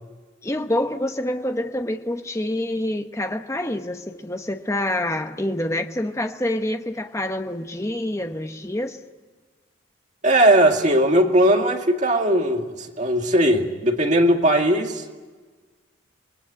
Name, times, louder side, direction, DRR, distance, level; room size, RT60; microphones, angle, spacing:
voice 1, 0.4-9.0, left 1 dB, 15° left, 1.0 m, -27 dB
voice 2, 10.2-15.0, right 1 dB, 35° right, 2.3 m, -18 dB
26.5 x 20.5 x 8.7 m
head